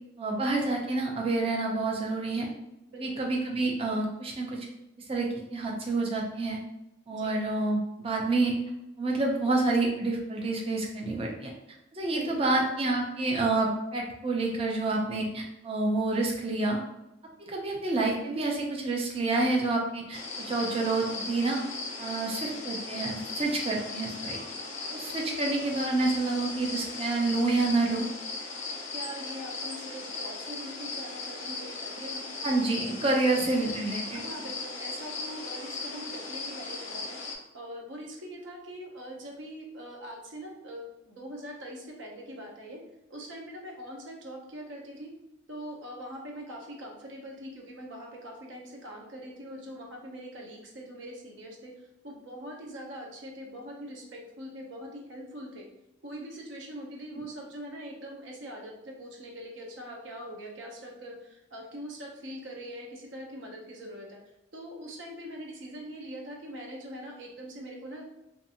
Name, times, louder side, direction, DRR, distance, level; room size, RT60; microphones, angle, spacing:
voice 1, 0.2-2.5 3.0-4.7 5.1-6.6 7.1-8.5 9.0-11.5 11.9-16.8 17.4-21.6 22.0-24.4 24.9-28.1 32.4-34.2, right 2 dB, 30° right, -1 dB, 0.4 m, -28 dB
voice 2, 2.9-3.3 7.1-7.4 12.1-12.6 28.9-32.3 34.1-37.2 37.5-42.8 43.1-45.1 45.5-51.7 52.0-55.6 56.0-64.2 64.5-68.0, equal, 75° right, 0 dB, 0.7 m, -42 dB
sound 1, 20.1-37.3, left 3 dB, 40° left, 0.5 m, -37 dB
2.6 x 2.4 x 2.7 m, 0.88 s
head